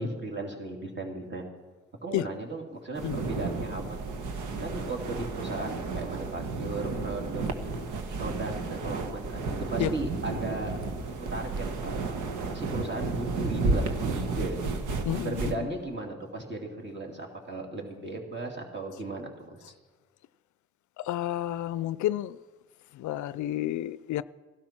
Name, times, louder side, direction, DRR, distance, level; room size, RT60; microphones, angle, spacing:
voice 1, 0.0-1.5 2.0-4.2 4.6-7.4 8.2-10.8 11.0-12.1 12.5-14.6 15.2-19.6, right 2 dB, 35° right, 2.9 m, -36 dB
sound 1, 2.9-15.5, right 3 dB, 80° right, 1.4 m, -32 dB
voice 2, 15.1-15.7 21.0-22.4 23.0-24.2, left 13 dB, 70° left, 0.5 m, -30 dB
16.5 x 12.0 x 6.0 m
cardioid pair, 90°, 30 cm